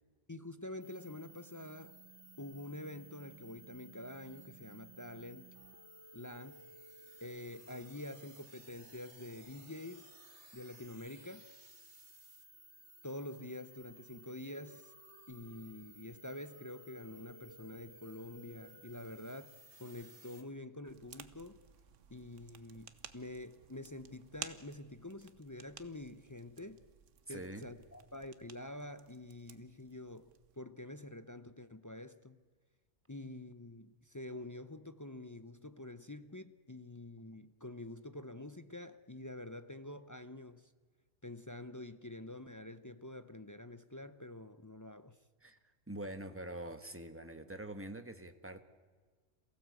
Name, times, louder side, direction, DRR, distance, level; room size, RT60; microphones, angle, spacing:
voice 1, 0.3-2.0 2.4-5.6 6.1-6.6 7.2-10.1 10.5-11.4 13.0-14.9 15.3-19.5 19.8-21.6 22.1-26.8 27.3-32.4 33.1-40.7 41.2-45.2, left 1 dB, 20° left, 0.5 m, -47 dB
sound 1, 0.8-20.4, right 2 dB, 65° right, 2.1 m, -57 dB
sound 2, 20.8-30.6, right 7 dB, 85° right, 1.4 m, -54 dB
voice 2, 27.3-27.7 45.4-45.6 45.9-48.6, right 1 dB, 10° right, 1.3 m, -45 dB
27.5 x 16.0 x 8.3 m
omnidirectional pair, 1.3 m